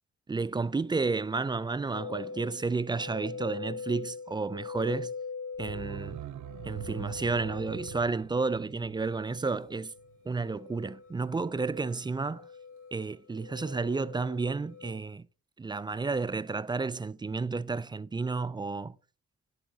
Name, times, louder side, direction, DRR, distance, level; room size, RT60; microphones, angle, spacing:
voice 1, 0.3-5.1 5.6-6.2 6.6-9.9 10.3-12.5 12.9-15.3 15.6-18.9, right 4 dB, 15° right, 0.3 m, -31 dB
sound 1, 1.9-14.9, left 5 dB, 35° left, 3.2 m, -43 dB
sound 2, 5.5-10.3 10.6-10.7, right 12 dB, 60° right, 0.6 m, -43 dB
10.0 x 4.7 x 2.7 m
hypercardioid pair, 40°, 33 cm